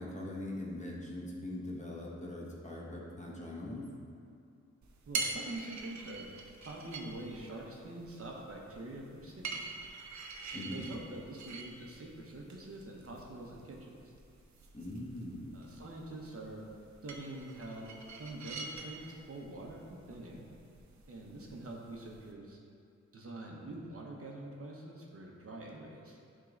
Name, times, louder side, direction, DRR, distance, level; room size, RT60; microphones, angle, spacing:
voice 1, 0.0-3.9 10.5-10.9 14.7-15.7, left 1 dB, 25° left, -4 dB, 1.3 m, -42 dB
sound 1, 4.8-22.3, right 3 dB, 65° right, 0.8 m, -46 dB
voice 2, 5.1-6.3 6.6-9.7 10.5-14.0 15.5-16.7 17.0-17.9 18.2-20.4 21.1-22.6 23.1-26.2, right 2 dB, 50° right, -2 dB, 1.1 m, -45 dB
10.0 x 3.8 x 3.9 m, 2.5 s
wide cardioid pair, 85°, 30 cm